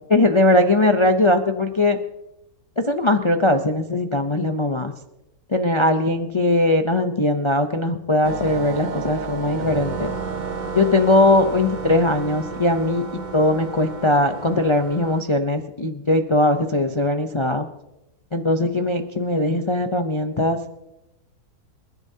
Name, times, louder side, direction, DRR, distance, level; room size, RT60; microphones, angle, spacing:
voice 1, 0.1-2.0 2.8-4.9 5.5-10.1 10.7-13.0 13.3-17.7 18.3-20.6, left 2 dB, 40° left, 5 dB, 0.4 m, -20 dB
sound 1, 8.2-15.2, right 5 dB, 45° right, 0.6 m, -31 dB
28.0 x 11.0 x 2.8 m, 0.92 s
omnidirectional pair, 1.6 m